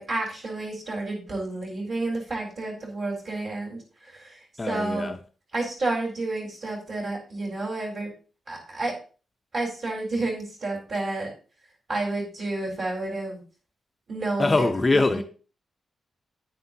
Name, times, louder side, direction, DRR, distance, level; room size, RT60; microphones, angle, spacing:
voice 1, 0.0-4.4 4.6-5.1 5.5-8.1 8.5-8.9 9.5-11.3 11.9-13.4 14.1-14.6 14.9-15.0, right 2 dB, 45° right, 4.1 m, -30 dB
voice 2, 4.6-5.2 14.4-15.2, left 3 dB, 20° left, 0.5 m, -23 dB
9.7 x 9.6 x 2.8 m
wide cardioid pair, 165°, 0 cm